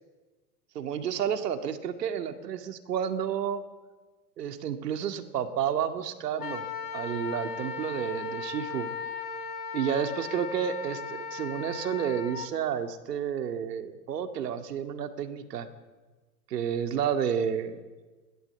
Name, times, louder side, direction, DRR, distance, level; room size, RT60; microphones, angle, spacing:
voice 1, 0.8-3.6 4.4-6.7 6.9-8.9 9.7-15.7 16.5-17.8, right 8 dB, 75° right, 7 dB, 2.1 m, -31 dB
Wind instrument woodwind instrument, 6.4-12.5, left 5 dB, 75° left, 3.1 m, -37 dB
22.0 x 16.0 x 8.1 m, 1.3 s
hypercardioid pair, 120°, 49 cm